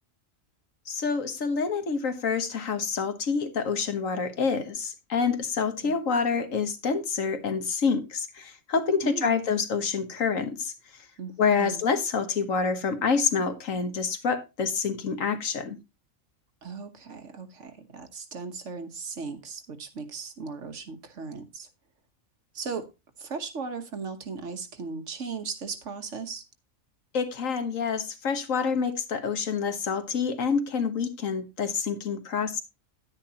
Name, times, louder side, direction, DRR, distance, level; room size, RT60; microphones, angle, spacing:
voice 1, 0.9-10.7 11.4-15.8 27.1-32.6, left 5 dB, 70° left, 1.6 m, -27 dB
voice 2, 9.0-9.4 11.2-11.8 16.6-21.7 22.5-22.9 23.2-26.4, right 5 dB, 65° right, 1.5 m, -37 dB
10.5 x 9.6 x 2.8 m
omnidirectional pair, 1.4 m